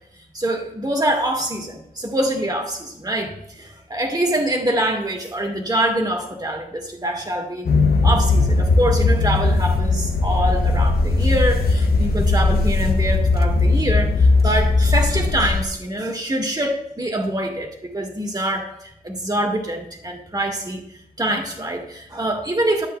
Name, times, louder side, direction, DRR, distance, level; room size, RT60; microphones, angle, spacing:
voice 1, 0.3-7.7 8.0-18.7 19.0-20.8 21.2-22.9, right 1 dB, 25° right, 2 dB, 1.8 m, -24 dB
sound 1, 7.7-15.6, left 3 dB, 85° left, 0.7 m, -18 dB
12.5 x 8.2 x 2.3 m, 0.79 s
wide cardioid pair, 80°, 15 cm